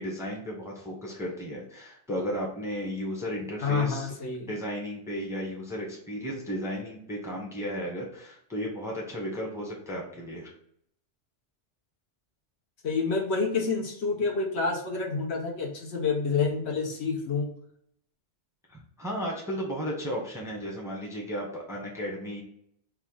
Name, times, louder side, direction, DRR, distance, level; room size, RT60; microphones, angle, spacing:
voice 1, 0.0-4.1 4.4-10.5 18.7-22.4, equal, 5° right, -1 dB, 0.8 m, -34 dB
voice 2, 3.6-4.5 12.8-17.5, left 4 dB, 65° left, 1 dB, 1.1 m, -28 dB
4.5 x 2.4 x 3.8 m, 0.69 s
omnidirectional pair, 1.2 m